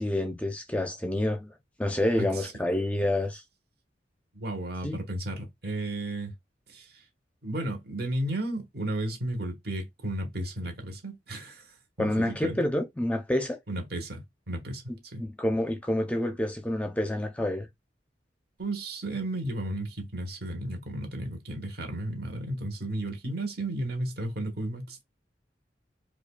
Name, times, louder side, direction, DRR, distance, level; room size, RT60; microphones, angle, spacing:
voice 1, 0.0-1.5 1.8-3.4 4.8-5.0 12.0-13.6 15.2-17.7, left 1 dB, 10° left, 0.4 m, -28 dB
voice 2, 2.2-2.5 4.3-6.3 6.7-7.0 7.4-11.7 12.0-12.7 13.7-15.2 18.6-25.0, right 1 dB, 60° right, 1.1 m, -34 dB
4.8 x 2.3 x 2.2 m
head